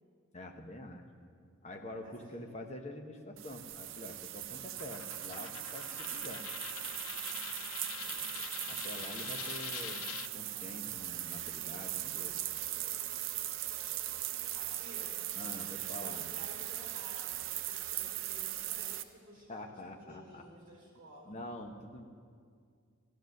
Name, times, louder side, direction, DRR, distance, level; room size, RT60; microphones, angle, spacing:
voice 1, 0.3-1.0 1.6-6.4 8.7-10.0 10.3-12.4 15.4-16.2 19.5-20.4 21.3-22.1, left 1 dB, 30° left, 3 dB, 1.0 m, -46 dB
voice 2, 2.0-2.4 8.0-8.5 8.9-9.9 13.3-13.4 14.5-15.2 15.9-21.4, right 1 dB, 40° right, -1 dB, 4.3 m, -55 dB
sound 1, 3.4-19.0, right 13 dB, 65° right, 0.6 m, -39 dB
Coin (dropping), 4.8-10.3, left 10 dB, 65° left, 0.4 m, -44 dB
12.5 x 12.0 x 6.5 m, 2.1 s
head